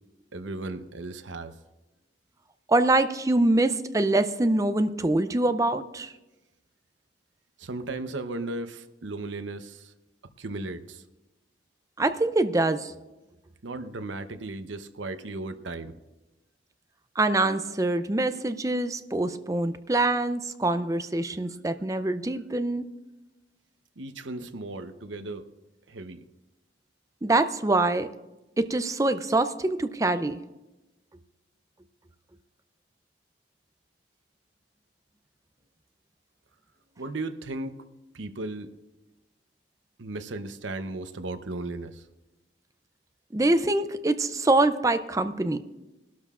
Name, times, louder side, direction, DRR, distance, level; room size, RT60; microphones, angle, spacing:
voice 1, 0.3-1.6 7.6-9.9 10.4-11.0 13.6-15.9 24.0-25.5 25.9-26.3 37.0-37.8 38.1-38.7 40.0-42.1, right 2 dB, 85° right, 10 dB, 0.8 m, -36 dB
voice 2, 2.7-6.1 12.0-12.9 17.2-22.8 27.2-28.1 28.6-30.4 43.3-45.6, right 2 dB, 15° right, 10 dB, 0.5 m, -24 dB
22.5 x 12.5 x 2.5 m, 1.0 s
head